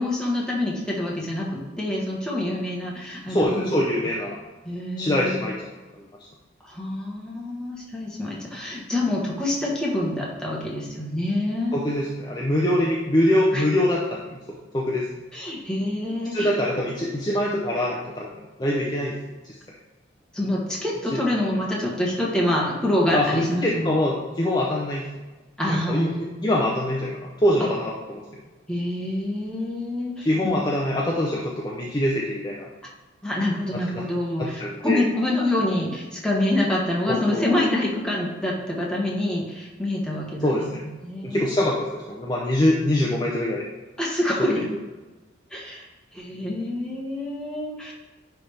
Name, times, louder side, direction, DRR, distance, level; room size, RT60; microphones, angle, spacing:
voice 1, 0.0-3.7 4.6-5.5 6.6-11.8 13.5-13.6 15.3-16.5 20.3-23.9 25.6-26.3 28.7-30.6 33.2-41.5 44.0-44.7 45.5-45.8 46.1-47.9, left 1 dB, 5° left, -4 dB, 1.3 m, -26 dB
voice 2, 3.3-4.4 5.0-5.7 6.0-6.1 11.7-14.4 14.7-15.1 16.3-19.1 19.4-19.6 21.1-21.2 23.1-25.0 25.7-26.1 26.4-28.2 30.2-32.7 33.7-34.0 34.4-35.0 37.1-37.4 40.4-40.8 41.2-43.7 44.6-44.7, left 1 dB, 20° left, -3 dB, 0.6 m, -24 dB
9.6 x 3.5 x 3.4 m, 1.2 s
head